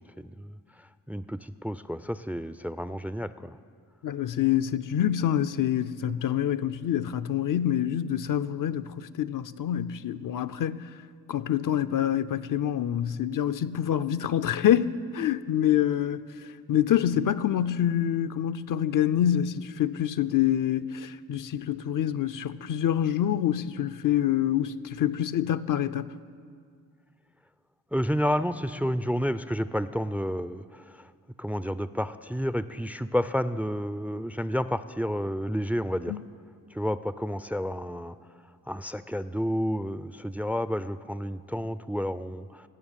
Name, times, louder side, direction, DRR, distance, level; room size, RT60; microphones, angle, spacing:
voice 1, 0.2-0.6 1.1-3.6 27.9-31.0 31.4-36.1 36.7-38.2 38.7-42.6, equal, 5° right, 0.4 m, -30 dB
voice 2, 4.0-10.8 11.3-16.2 16.7-26.1 36.1-36.2, left 10 dB, 70° left, 0.5 m, -26 dB
17.5 x 6.2 x 9.0 m
cardioid pair, 60°, 33 cm